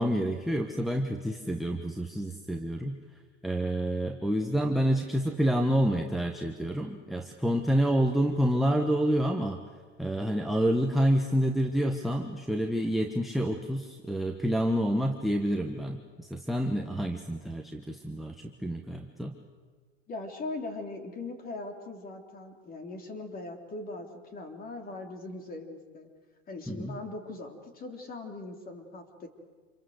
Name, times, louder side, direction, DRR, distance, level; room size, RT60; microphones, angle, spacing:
voice 1, 0.0-3.0 3.4-9.6 10.0-19.4 26.7-27.0, equal, ahead, 2 dB, 1.1 m, -28 dB
voice 2, 20.1-26.1 26.5-29.3, left 2 dB, 25° left, 4 dB, 3.5 m, -40 dB
27.5 x 22.5 x 8.0 m, 1.5 s
hypercardioid pair, 130°, 37 cm